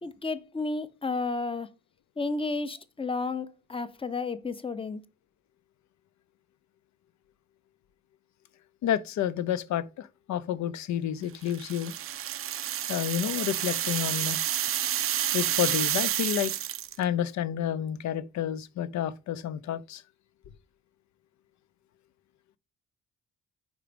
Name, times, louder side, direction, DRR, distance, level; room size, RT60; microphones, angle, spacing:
voice 1, 0.0-1.7 2.2-5.0, left 3 dB, 20° left, 0.7 m, -32 dB
voice 2, 8.8-11.9 12.9-14.4 15.3-16.5 17.0-20.0, left 10 dB, 65° left, 0.6 m, -30 dB
sound 1, 11.5-17.0, right 11 dB, 45° right, 0.4 m, -29 dB
4.9 x 4.5 x 5.1 m
cardioid pair, 90°, 30 cm